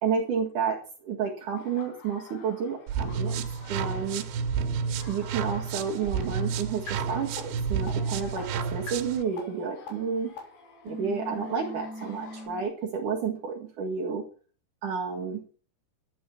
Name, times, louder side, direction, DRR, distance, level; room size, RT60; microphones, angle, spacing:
voice 1, 0.0-4.2 5.1-10.3 10.8-14.2 14.8-15.4, right 6 dB, 55° right, 2 dB, 2.7 m, -31 dB
Laughter, 1.6-12.5, left 3 dB, 80° left, 5.9 m, -50 dB
sound 1, 2.9-9.2, right 6 dB, 85° right, 3.5 m, -31 dB
sound 2, 6.9-7.0 7.4-7.5 7.9-8.0 8.4-8.5 8.9-9.0 9.4-9.5 9.9-10.0 10.4-10.5 10.9-12.6, left 2 dB, 60° left, 5.3 m, -39 dB
12.0 x 8.5 x 6.0 m, 0.39 s
omnidirectional pair, 5.1 m